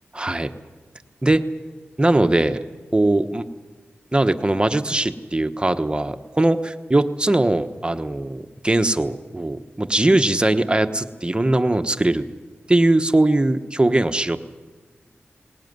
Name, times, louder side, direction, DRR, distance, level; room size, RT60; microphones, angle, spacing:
voice 1, 0.1-0.5 1.2-1.4 2.0-2.6 2.9-3.4 4.1-12.2 12.7-14.4, right 2 dB, 20° right, 9 dB, 1.0 m, -20 dB
19.5 x 16.5 x 9.5 m, 1.4 s
cardioid pair, 50°, 4 cm